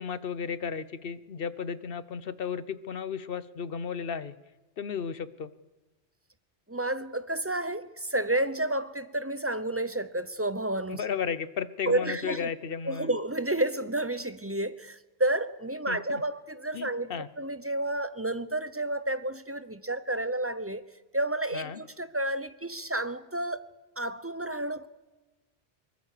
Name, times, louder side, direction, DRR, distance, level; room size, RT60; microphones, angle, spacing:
voice 1, 0.0-4.4 4.8-5.5 10.9-13.1 15.9-16.2 16.7-17.3 21.5-21.8, left 6 dB, 55° left, 1.0 m, -34 dB
voice 2, 6.7-11.0 11.9-12.5 12.8-20.8 21.1-23.7 24.0-24.9, right 1 dB, 15° right, 0.7 m, -31 dB
23.0 x 20.5 x 6.7 m
omnidirectional pair, 1.1 m